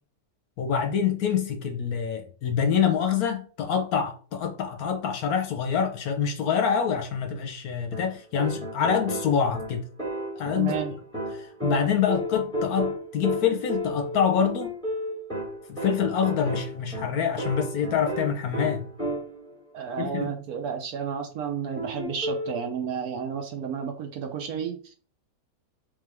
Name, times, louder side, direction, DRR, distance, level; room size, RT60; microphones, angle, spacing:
voice 1, 0.6-9.8 10.4-10.7 11.4-14.7 15.7-18.9 20.0-20.3, left 7 dB, 65° left, 1.0 m, -26 dB
sound 1, 7.9-19.5 21.8-22.6, equal, 5° left, 1.2 m, -33 dB
voice 2, 10.5-10.9 19.7-24.9, right 7 dB, 70° right, 1.0 m, -32 dB
3.5 x 3.4 x 3.3 m
omnidirectional pair, 1.9 m